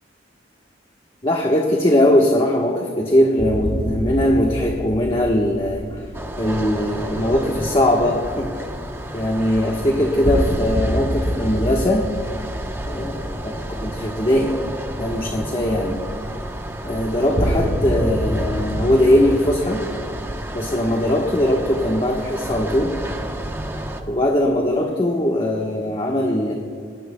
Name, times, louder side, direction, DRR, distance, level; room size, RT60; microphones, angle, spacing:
voice 1, 1.2-6.1 6.4-8.6 9.1-12.1 12.9-13.5 13.8-14.6 15.0-16.0 16.8-19.8 20.5-22.9 24.1-26.5, left 1 dB, 30° left, -1 dB, 1.2 m, -20 dB
sound 1, 3.4-7.5 10.2-14.6 15.0-15.1 17.3-20.4, equal, 40° right, 4.2 m, -27 dB
sound 2, 6.1-24.0, right 1 dB, 15° right, 0.9 m, -31 dB
27.5 x 18.5 x 2.3 m, 2.2 s
head